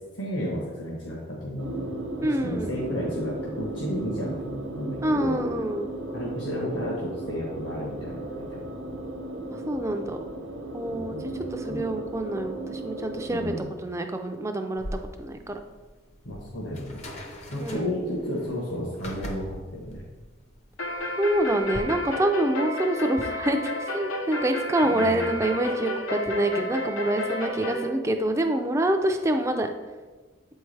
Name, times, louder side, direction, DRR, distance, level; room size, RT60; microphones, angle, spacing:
voice 1, 0.2-2.0 2.2-5.4 6.1-8.2 8.5-8.6 10.9-11.4 11.6-11.8 13.3-13.7 16.2-17.0 17.5-20.0 24.8-25.3, equal, 60° left, -4 dB, 1.1 m, -32 dB
sound 1, 1.6-13.6, right 2 dB, 70° right, 0.9 m, -36 dB
voice 2, 2.2-2.8 5.0-5.9 9.5-10.2 10.7-11.2 11.5-13.5 13.8-14.8 15.2-15.6 17.6-17.9 21.2-29.7, right 1 dB, 15° right, 5 dB, 0.4 m, -26 dB
sound 2, 14.8-21.8, equal, 30° left, 0.6 m, -41 dB
sound 3, 20.8-27.8, left 1 dB, 85° left, 0.9 m, -31 dB
7.6 x 4.6 x 3.3 m, 1.3 s
head